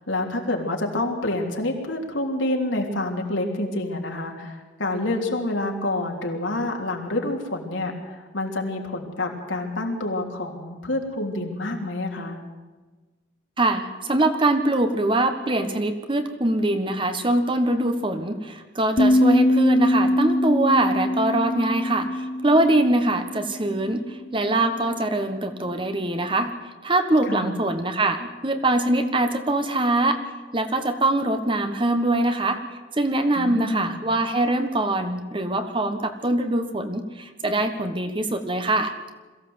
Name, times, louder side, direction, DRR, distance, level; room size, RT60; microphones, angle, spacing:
voice 1, 0.1-12.4 27.3-27.6 33.4-34.0, left 2 dB, 75° left, 1 dB, 3.2 m, -28 dB
voice 2, 13.6-26.5 26.8-30.2 30.5-39.0, right 2 dB, 25° right, 8 dB, 1.3 m, -23 dB
sound 1, 19.0-24.1, left 1 dB, 40° left, 0.6 m, -22 dB
22.0 x 15.5 x 8.0 m, 1.3 s
head